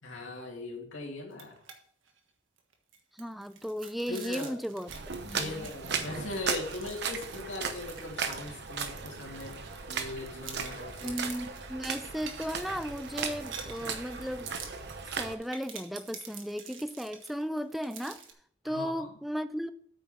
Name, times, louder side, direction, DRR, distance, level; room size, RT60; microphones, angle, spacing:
voice 1, 0.0-1.6 4.1-4.6 5.3-11.2 18.6-19.1, left 2 dB, 75° left, 2.6 m, -40 dB
sound 1, 1.3-1.8 2.1-2.2 2.6-10.1 10.4-18.3, right 7 dB, 75° right, 1.4 m, -48 dB
voice 2, 3.2-4.9 5.2-5.7 11.0-14.5 15.2-18.2 18.6-19.7, equal, ahead, 0.3 m, -35 dB
sound 2, 4.9-15.3, right 5 dB, 55° right, 0.9 m, -37 dB
8.8 x 5.3 x 5.7 m
head